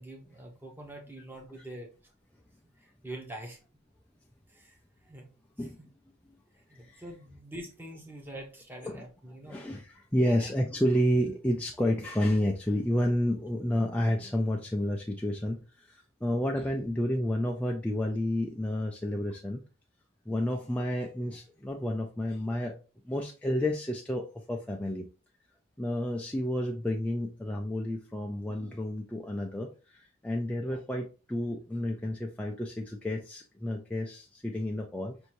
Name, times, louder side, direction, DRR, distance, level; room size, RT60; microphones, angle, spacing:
voice 1, 0.0-1.9 2.8-3.6 4.5-4.8 5.1-5.3 5.5-5.7 6.7-9.6 10.1-10.5, right 1 dB, 10° right, 0 dB, 0.8 m, -44 dB
voice 2, 9.5-19.6 20.3-22.8 23.0-25.1 25.8-35.2, left 1 dB, 5° left, 0 dB, 0.3 m, -30 dB
5.3 x 2.6 x 3.0 m, 0.34 s
head